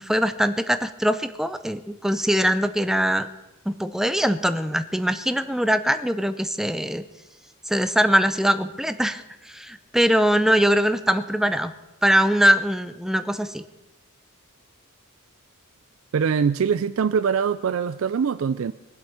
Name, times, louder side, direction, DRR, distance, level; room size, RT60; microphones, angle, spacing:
voice 1, 0.0-3.3 3.7-7.0 7.7-11.7 12.0-13.6, equal, ahead, 11 dB, 0.5 m, -22 dB
voice 2, 16.1-18.7, right 6 dB, 65° right, 14 dB, 0.4 m, -23 dB
22.0 x 8.1 x 5.7 m, 1.0 s
head